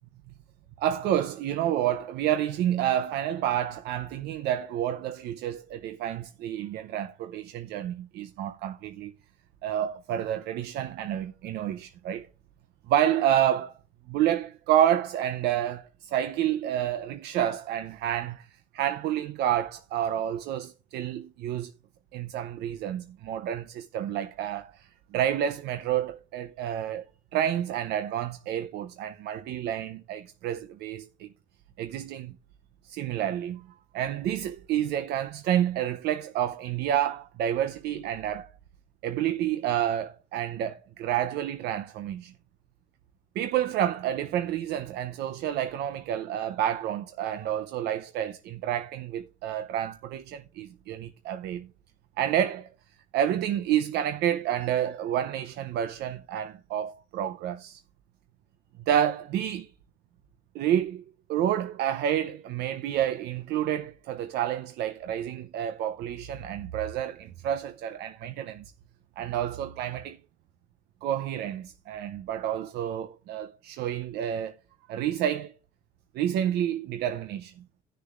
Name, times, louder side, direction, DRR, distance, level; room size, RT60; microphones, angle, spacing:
voice 1, 0.8-9.1 9.6-12.3 12.9-13.8 14.1-18.5 18.7-21.7 22.1-24.9 25.1-27.0 27.3-31.3 31.8-32.3 32.9-33.7 33.9-38.5 39.0-42.3 43.4-51.7 52.2-52.7 53.1-57.8 58.9-59.7 60.5-61.0 61.3-68.6 69.2-70.2 71.0-74.6 74.9-75.5 76.1-77.5, right 11 dB, 75° right, 0.6 m, -29 dB
17.0 x 6.7 x 2.4 m
cardioid pair, 110°, 17 cm